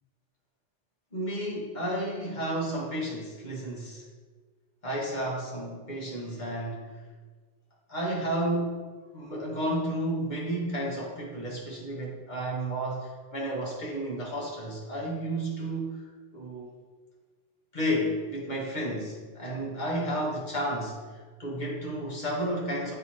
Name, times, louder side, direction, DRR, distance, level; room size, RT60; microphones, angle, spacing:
voice 1, 1.1-4.0 4.8-7.0 7.9-16.7 17.7-22.9, right 1 dB, 45° left, -4 dB, 1.4 m, -32 dB
8.0 x 3.0 x 4.2 m, 1.4 s
omnidirectional pair, 1.1 m